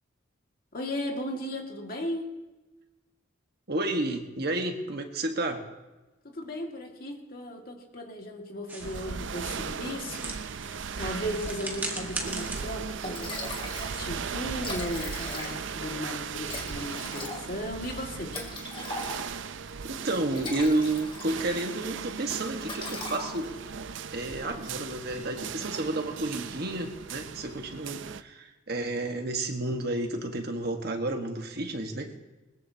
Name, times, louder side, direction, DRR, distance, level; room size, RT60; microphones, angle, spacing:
voice 1, 0.7-2.3 6.2-13.4 13.8-18.4, left 1 dB, 50° left, 1 dB, 2.1 m, -36 dB
voice 2, 3.7-5.7 19.8-23.5 24.1-32.2, right 2 dB, 55° right, 4 dB, 1.5 m, -31 dB
sound 1, 8.7-14.0, right 2 dB, 10° right, 1.8 m, -40 dB
sound 2, 8.8-28.2, right 6 dB, 70° right, 0.5 m, -37 dB
Liquid, 12.7-12.8 13.0-14.0 14.2-14.3 14.5-15.8 16.5-19.5 20.1-21.7 22.0-22.2 22.6-23.7, left 2 dB, 25° left, 2.2 m, -39 dB
21.0 x 20.5 x 2.9 m, 1.1 s
head